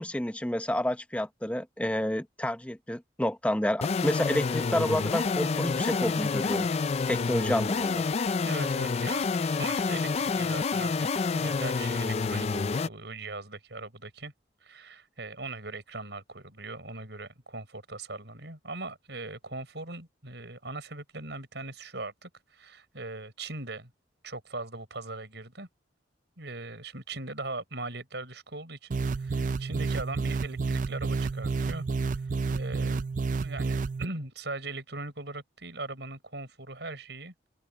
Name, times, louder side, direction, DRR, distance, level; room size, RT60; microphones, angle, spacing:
voice 1, 0.0-6.7 7.1-8.1, left 1 dB, 5° left, 0.8 m, -29 dB
sound 1, 3.8-12.9, left 4 dB, 35° left, 0.3 m, -28 dB
voice 2, 8.0-14.3 14.6-23.9 24.2-25.7 26.4-33.0 33.4-37.3, right 2 dB, 65° right, 5.9 m, -40 dB
sound 2, 28.9-34.1, right 4 dB, 45° right, 0.4 m, -30 dB
open air
head